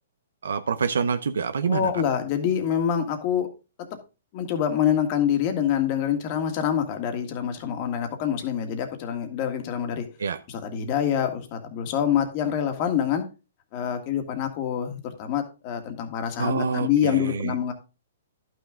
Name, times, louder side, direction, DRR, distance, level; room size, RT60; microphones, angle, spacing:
voice 1, 0.4-1.9 10.2-10.4 16.4-17.6, right 5 dB, 85° right, 9 dB, 0.7 m, -26 dB
voice 2, 1.7-3.5 3.8-3.9 4.3-10.1 10.5-13.2 13.7-17.7, left 9 dB, 40° left, 6 dB, 1.9 m, -26 dB
11.5 x 6.3 x 3.8 m, 0.31 s
hypercardioid pair, 145°, 0 cm